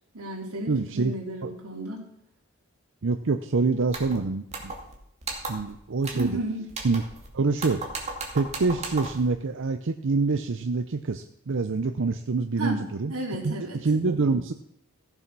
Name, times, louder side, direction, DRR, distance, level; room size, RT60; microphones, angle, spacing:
voice 1, 0.1-2.0 6.1-6.6 12.6-13.9, right 1 dB, 90° right, -1 dB, 3.5 m, -33 dB
voice 2, 0.7-1.1 1.4-1.5 3.0-4.7 5.3-6.4 6.8-7.0 7.3-7.8 8.3-13.1 13.4-13.5 13.8-14.5, right 4 dB, 60° right, 7 dB, 0.6 m, -26 dB
sound 1, 3.9-4.2 4.5-4.9 5.2-5.7 6.0-6.4 6.7-7.3 7.6-9.2, right 3 dB, 30° right, 2.4 m, -36 dB
15.0 x 7.1 x 6.0 m, 0.76 s
head